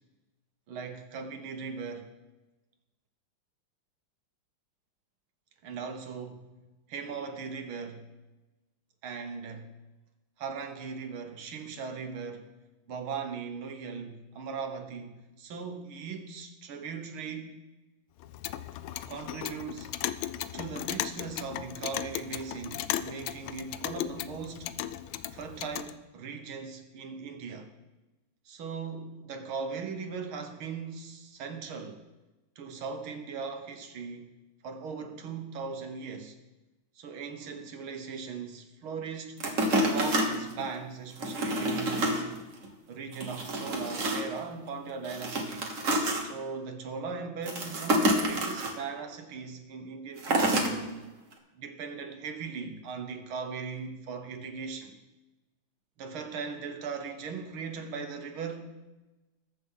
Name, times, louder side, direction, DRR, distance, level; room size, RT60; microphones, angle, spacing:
voice 1, 0.7-2.1 5.6-6.5 6.9-8.1 9.0-9.7 10.4-12.5 12.9-17.6 19.1-19.9 20.5-24.8 25.3-27.7 28.5-32.0 32.6-34.3 34.6-36.4 37.0-39.4 39.8-42.4 42.9-45.8 46.2-50.9 51.6-55.0 56.0-58.7, right 5 dB, 85° right, 2.1 m, -39 dB
Clock, 18.2-25.9, left 12 dB, 85° left, 1.4 m, -36 dB
sound 1, 39.4-40.7 41.2-42.2 42.6-42.7 43.1-44.4 45.0-46.2 47.4-48.7 50.2-50.7 51.3-51.4, right 1 dB, 40° right, 1.7 m, -28 dB
20.5 x 7.0 x 4.0 m
omnidirectional pair, 2.2 m